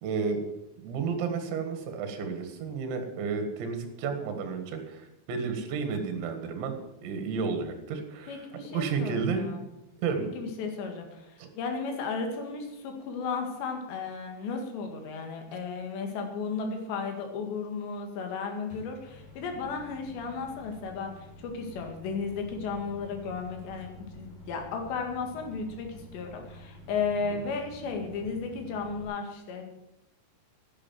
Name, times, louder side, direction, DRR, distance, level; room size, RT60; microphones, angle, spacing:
voice 1, 0.0-0.4 0.8-6.8 7.0-9.5 10.0-10.3 11.4-11.5 27.3-27.4, right 5 dB, 70° right, 6 dB, 3.8 m, -32 dB
voice 2, 8.3-9.7 10.2-29.6, left 5 dB, 65° left, 3 dB, 4.0 m, -34 dB
Microwave oven, 18.7-29.0, equal, 40° left, 5.1 m, -49 dB
11.0 x 10.0 x 7.6 m, 0.94 s
omnidirectional pair, 5.8 m